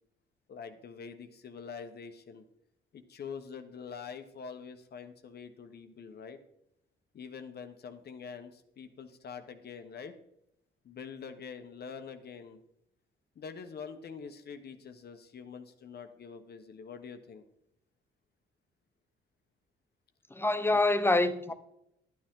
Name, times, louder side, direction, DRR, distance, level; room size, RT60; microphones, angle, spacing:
voice 1, 0.5-2.4 2.9-6.4 7.1-10.1 10.8-12.6 13.4-17.4, left 6 dB, 55° left, 1.2 m, -45 dB
voice 2, 20.3-21.5, left 2 dB, 10° left, 0.9 m, -26 dB
11.5 x 9.2 x 3.8 m
cardioid pair, 90°, 20 cm